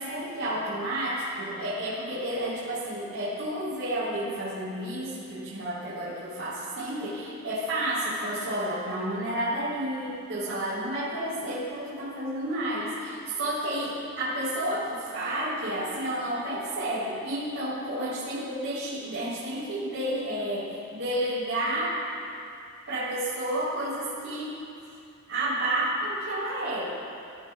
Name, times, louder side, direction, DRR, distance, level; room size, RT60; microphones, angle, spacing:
voice 1, 0.0-22.0 22.9-24.6 25.3-27.0, right 1 dB, 65° right, -11 dB, 3.5 m, -31 dB
23.0 x 14.0 x 2.3 m, 2.6 s
head